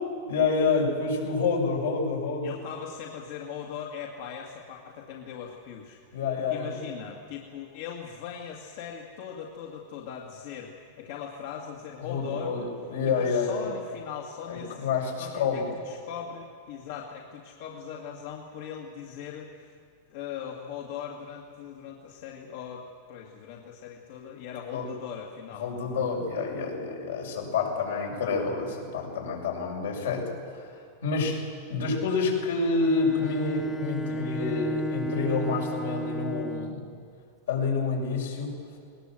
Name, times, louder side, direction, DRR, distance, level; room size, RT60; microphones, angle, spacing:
voice 1, 0.3-2.5 6.1-6.8 12.0-13.6 14.5-15.7 24.7-24.9 25.5-30.8 31.0-31.4 31.7-36.8 37.5-38.6, left 4 dB, 90° left, -1 dB, 6.5 m, -28 dB
voice 2, 2.4-6.0 6.4-10.7 11.0-12.7 13.2-14.9 15.2-19.7 20.1-22.8 23.1-25.7, left 8 dB, 65° left, -1 dB, 2.2 m, -40 dB
Bowed string instrument, 32.8-36.9, equal, 5° left, 0.7 m, -33 dB
21.0 x 19.0 x 7.8 m, 2.4 s
hypercardioid pair, 130°, 0 cm